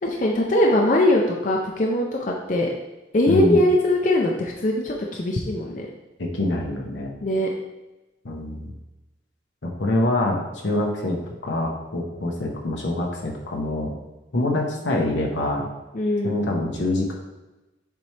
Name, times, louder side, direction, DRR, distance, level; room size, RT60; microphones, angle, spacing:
voice 1, 0.0-2.7 3.1-5.9 7.2-7.5 15.9-16.4, left 1 dB, 45° left, -1 dB, 0.5 m, -21 dB
voice 2, 3.3-3.6 6.2-7.1 8.2-8.7 9.6-11.2 11.4-13.9 14.3-15.7 16.2-17.1, left 1 dB, 85° left, 0 dB, 0.9 m, -25 dB
6.8 x 4.3 x 3.3 m, 1.0 s
head